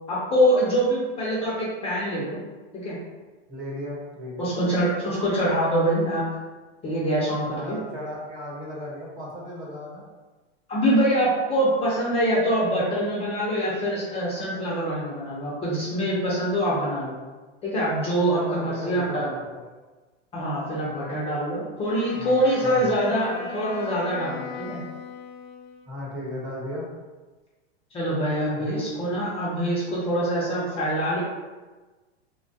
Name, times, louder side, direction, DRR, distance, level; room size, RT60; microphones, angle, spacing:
voice 1, 0.1-2.4 2.7-3.0 4.4-6.2 6.8-7.8 10.7-17.1 17.6-19.3 20.3-24.8 27.9-31.2, equal, 20° left, -7 dB, 0.5 m, -24 dB
voice 2, 3.5-4.5 7.4-10.0 18.3-19.0 19.3-19.6 22.2-22.9 25.9-26.9 28.6-28.8, left 1 dB, 45° right, -4 dB, 1.0 m, -36 dB
Wind instrument woodwind instrument, 21.8-26.0, left 6 dB, 70° left, 0.5 m, -38 dB
3.0 x 2.1 x 2.6 m, 1.3 s
supercardioid pair, 140°, 32 cm